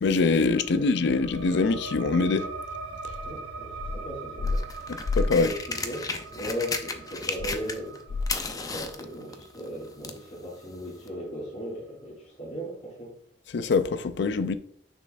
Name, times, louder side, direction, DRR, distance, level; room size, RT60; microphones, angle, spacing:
voice 1, 0.0-2.5 5.2-5.5 13.5-14.6, left 4 dB, 65° left, 0.4 m, -23 dB
sound 1, 0.5-11.7, right 3 dB, 80° right, 1.2 m, -42 dB
voice 2, 3.2-5.0 5.3-13.1, equal, 40° left, 2.4 m, -37 dB
sound 2, 4.4-10.3 11.1-11.2, left 4 dB, 20° left, 0.6 m, -34 dB
6.5 x 6.3 x 2.6 m
head